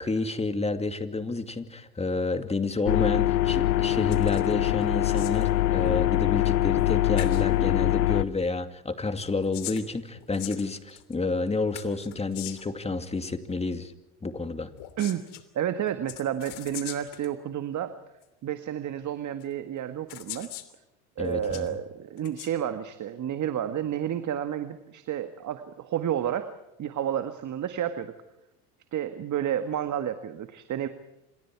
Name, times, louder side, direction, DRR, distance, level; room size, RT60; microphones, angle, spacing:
voice 1, 0.0-13.9 14.2-14.7 21.2-21.7, left 3 dB, 15° left, 8 dB, 2.5 m, -30 dB
sound 1, 2.9-8.2, left 14 dB, 85° left, 1.0 m, -23 dB
sound 2, 4.1-4.5 4.8-5.5 6.8-6.9 7.2-7.4 9.2-11.1 11.7-12.8 14.7-15.4 16.1-17.3 18.2-18.3 19.4-19.5 20.1-20.7 21.2-21.7 22.2-22.5, left 16 dB, 60° left, 3.0 m, -41 dB
voice 2, 15.5-17.9 18.4-20.5 21.2-26.5 26.8-28.1 28.9-30.9, right 10 dB, 40° right, 9 dB, 1.9 m, -30 dB
28.5 x 27.0 x 4.8 m, 0.91 s
hypercardioid pair, 85°, 45 cm